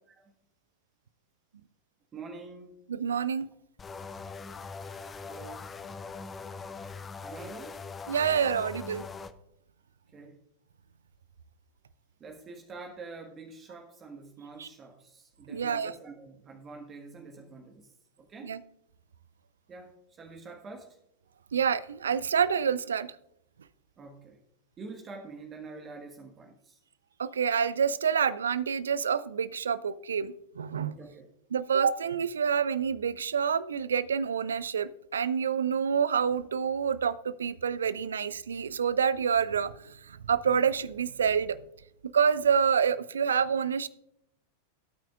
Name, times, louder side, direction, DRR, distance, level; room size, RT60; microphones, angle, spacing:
voice 1, 2.1-2.8 5.3-5.6 7.2-7.7 10.1-10.4 12.2-17.9 18.2-18.5 19.7-21.0 24.0-24.4 24.8-26.8 30.9-31.3, right 4 dB, 25° right, 1 dB, 1.5 m, -46 dB
voice 2, 2.9-3.5 8.1-9.0 14.6-14.7 15.5-15.9 18.4-18.6 21.5-23.1 27.2-31.0 31.5-39.7 40.1-41.6 42.1-43.9, right 7 dB, 70° right, 18 dB, 0.5 m, -27 dB
sound 1, 3.8-9.3, left 4 dB, 20° left, 0.6 m, -41 dB
17.5 x 9.0 x 2.4 m, 0.77 s
figure-of-eight pair, 90°, 0 cm